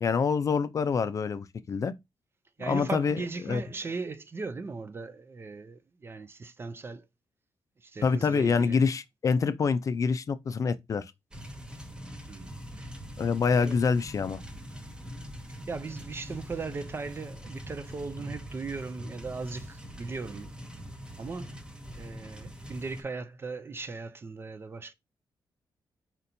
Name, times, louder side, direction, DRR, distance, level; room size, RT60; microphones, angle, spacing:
voice 1, 0.0-1.9 2.7-3.2 3.5-3.6 8.0-11.1 13.2-14.4, left 5 dB, 40° left, 0.4 m, -26 dB
voice 2, 2.6-7.1 7.8-8.8 12.3-12.9 13.4-13.8 15.7-20.5 21.2-21.6 21.9-24.9, right 4 dB, 25° right, 0.4 m, -38 dB
sound 1, 11.3-23.0, equal, 10° right, 0.8 m, -43 dB
4.3 x 4.2 x 2.6 m
cardioid pair, 130°, 9 cm